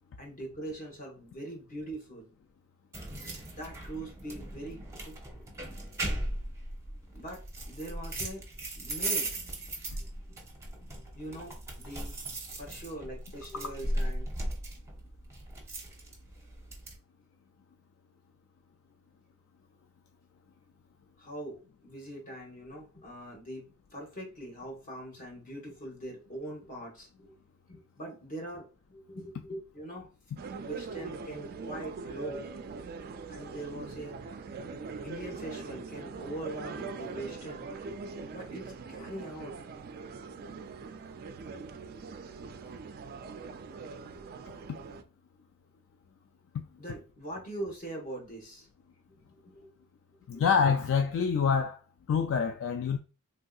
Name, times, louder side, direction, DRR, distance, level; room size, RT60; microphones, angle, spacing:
voice 1, 0.2-2.3 3.6-5.1 7.1-8.5 8.7-9.3 11.1-12.2 12.6-14.3 21.2-27.3 27.7-30.1 30.6-32.5 33.3-34.3 35.0-37.7 38.3-39.6 46.8-48.7 49.1-49.7 50.3-50.4, right 1 dB, 40° left, 1.1 m, -42 dB
Keys Door, 2.9-17.0, right 1 dB, 15° right, 0.7 m, -37 dB
sound 1, 30.4-45.0, right 4 dB, 45° right, 0.3 m, -42 dB
voice 2, 50.3-51.8 52.1-53.0, left 6 dB, 60° left, 0.3 m, -26 dB
3.3 x 2.6 x 2.3 m
head